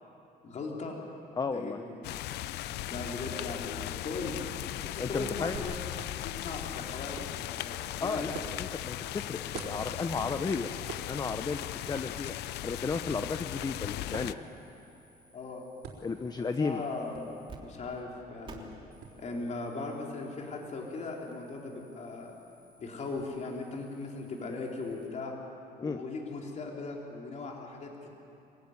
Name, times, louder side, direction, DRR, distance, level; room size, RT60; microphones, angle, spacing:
voice 1, 0.4-1.0 1.5-2.0 2.9-4.4 4.8-5.8 6.1-8.3 15.3-15.6 16.4-18.7 19.2-22.3 22.8-25.3 25.8-28.1, left 3 dB, 45° left, 0 dB, 4.0 m, -38 dB
voice 2, 1.4-1.8 5.0-5.6 8.0-10.7 11.1-11.6 11.8-12.4 12.6-14.4 16.0-16.8 25.8-26.0, left 4 dB, 25° left, 8 dB, 0.9 m, -33 dB
sound 1, 2.0-14.3, left 15 dB, 80° left, 0.6 m, -38 dB
sound 2, 5.5-23.3, right 5 dB, 85° right, 4.2 m, -51 dB
sound 3, 11.2-11.6 11.8-17.6 17.8-17.9 18.4-25.1, right 3 dB, 30° right, 3.3 m, -57 dB
25.0 x 16.0 x 9.8 m, 2.8 s
cardioid pair, 110°, 17 cm